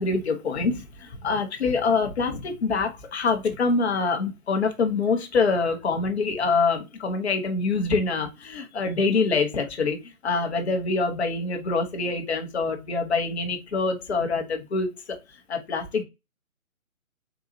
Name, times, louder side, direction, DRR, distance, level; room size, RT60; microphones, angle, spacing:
voice 1, 0.0-14.9 15.5-16.0, left 4 dB, 50° left, 4 dB, 0.8 m, -25 dB
3.8 x 2.3 x 2.6 m, 0.25 s
figure-of-eight pair, 145°, 43 cm